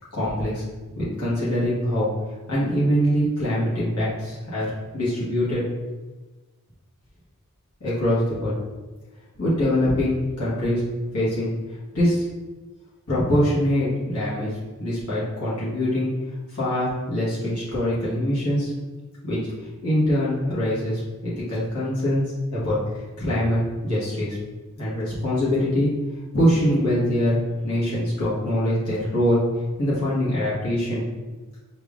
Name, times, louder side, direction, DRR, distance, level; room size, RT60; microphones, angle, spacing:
voice 1, 0.1-0.6 1.0-2.1 2.5-4.7 4.9-5.6 7.8-8.6 9.3-10.8 11.1-11.5 11.9-12.2 13.1-14.5 14.8-16.1 16.5-18.7 19.2-24.4 24.8-25.9 26.3-29.4 29.8-31.0, equal, 80° left, -9 dB, 1.4 m, -23 dB
5.3 x 2.8 x 2.4 m, 1.2 s
head